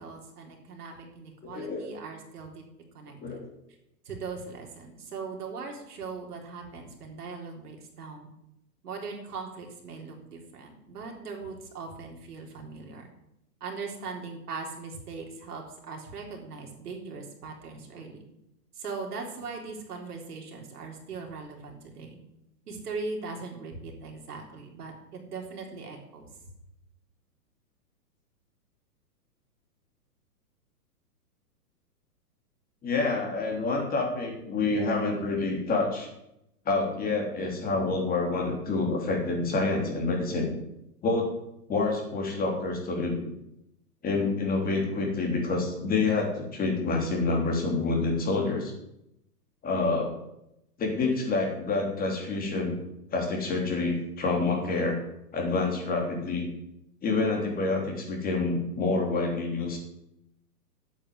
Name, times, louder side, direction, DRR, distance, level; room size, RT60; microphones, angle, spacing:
voice 1, 0.0-2.6 2.9-3.4 4.1-8.3 8.8-13.0 13.6-18.2 18.7-22.2 22.7-26.3, right 4 dB, 70° right, 1 dB, 3.8 m, -40 dB
voice 2, 1.4-1.9 3.2-3.4 32.8-36.1 36.6-40.5 41.0-41.3 41.7-43.2 44.0-48.7 49.6-50.2 50.8-52.8 53.1-55.0 55.3-56.5 57.0-59.8, left 3 dB, 20° left, 0 dB, 3.3 m, -27 dB
8.9 x 8.7 x 9.4 m, 0.84 s
hypercardioid pair, 140°, 48 cm